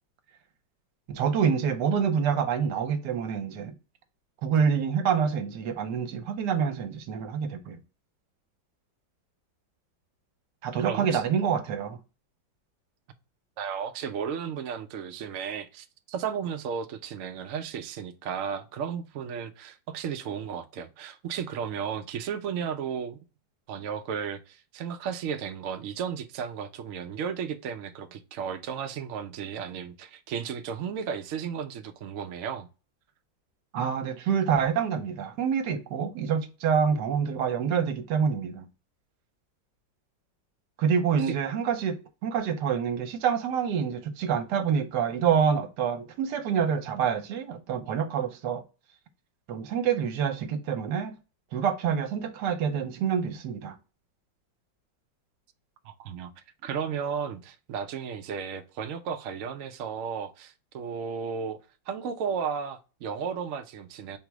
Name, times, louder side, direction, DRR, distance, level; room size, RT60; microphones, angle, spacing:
voice 1, 1.1-3.7 4.4-7.8 10.6-12.0 33.7-38.6 40.8-48.6 49.5-51.1 51.5-53.8, right 7 dB, 70° right, 1.2 m, -27 dB
voice 2, 10.8-11.2 13.6-23.2 23.7-32.7 41.2-41.3 55.8-56.3 56.6-61.6 61.9-64.2, right 7 dB, 85° right, 0.7 m, -34 dB
5.7 x 2.1 x 4.5 m
omnidirectional pair, 2.0 m